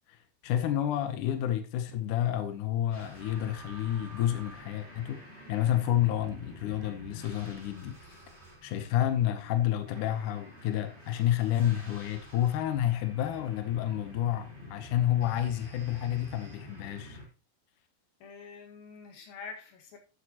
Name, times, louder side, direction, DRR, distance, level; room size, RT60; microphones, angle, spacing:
voice 1, 0.1-5.2 5.5-8.2 8.6-17.2, left 11 dB, 70° left, 2.3 m, -30 dB
sound 1, 2.9-17.2, equal, 15° right, 4.0 m, -49 dB
voice 2, 18.2-20.0, left 5 dB, 90° left, 3.6 m, -46 dB
12.5 x 8.1 x 2.9 m
omnidirectional pair, 4.0 m